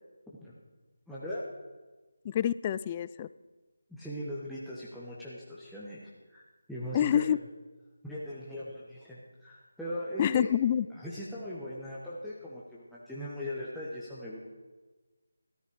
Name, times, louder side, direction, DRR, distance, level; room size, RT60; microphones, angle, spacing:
voice 1, 1.1-1.4 3.9-6.4 6.7-7.3 8.0-10.5 10.9-14.4, left 1 dB, ahead, -10 dB, 1.3 m, -39 dB
voice 2, 2.2-3.3 6.9-7.4 10.2-10.9, left 10 dB, 20° left, 16 dB, 0.3 m, -27 dB
13.5 x 13.0 x 4.8 m, 1.3 s
figure-of-eight pair, 160°, 0 cm